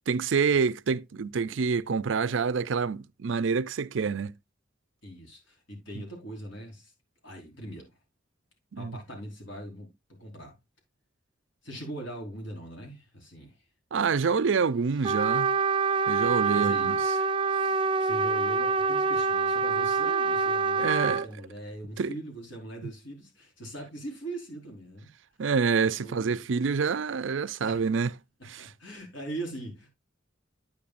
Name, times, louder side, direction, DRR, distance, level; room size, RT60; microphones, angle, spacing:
voice 1, 0.1-4.3 8.7-9.0 13.9-15.5 16.1-17.1 20.8-21.3 22.0-22.1 25.4-28.1 28.4-28.7, right 5 dB, 75° right, 0.5 m, -27 dB
voice 2, 5.0-6.9 7.2-8.0 8.8-9.9 10.2-10.5 11.6-13.6 16.1-17.0 17.5-25.1 26.0-26.5 27.6-27.8 28.6-29.9, right 1 dB, 70° left, 4.9 m, -41 dB
Trumpet, 15.0-21.3, right 5 dB, 25° right, 0.5 m, -26 dB
9.9 x 8.6 x 2.5 m
head